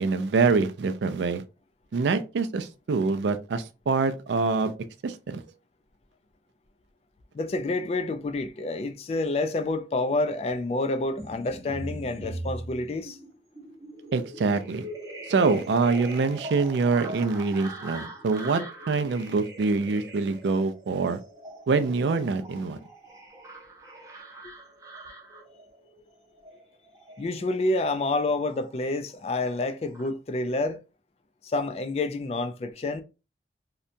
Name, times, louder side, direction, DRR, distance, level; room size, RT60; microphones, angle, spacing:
voice 1, 0.0-1.4 1.9-4.7 5.0-5.4 14.1-14.8 15.3-21.2 21.7-22.8, right 4 dB, 80° right, 0.4 m, -25 dB
voice 2, 7.3-13.2 27.2-30.8 31.4-33.0, left 2 dB, 35° left, 0.3 m, -28 dB
sound 1, 11.2-28.9 29.2-30.1, right 1 dB, 15° right, 0.6 m, -42 dB
2.8 x 2.2 x 2.5 m
head